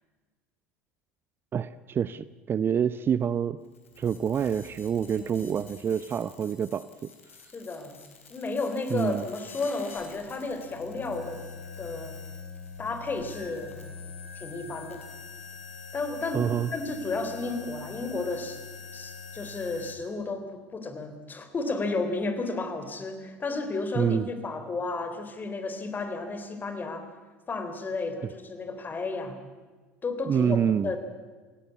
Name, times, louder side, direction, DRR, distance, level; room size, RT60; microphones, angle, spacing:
voice 1, 1.5-3.6 4.0-6.9 8.9-9.2 16.3-16.7 24.0-24.3 30.3-30.9, right 8 dB, 30° right, 16 dB, 0.7 m, -27 dB
sound 1, 3.6-20.0, left 5 dB, 80° left, 3.6 m, -45 dB
voice 2, 5.1-5.4 7.5-8.0 8.3-11.4 11.8-12.2 12.8-13.8 14.3-15.0 15.9-18.6 18.9-20.5 20.7-27.1 27.5-29.4 30.0-31.0, left 3 dB, 25° left, 9 dB, 4.1 m, -32 dB
27.0 x 17.0 x 8.5 m, 1.4 s
figure-of-eight pair, 70°, 7 cm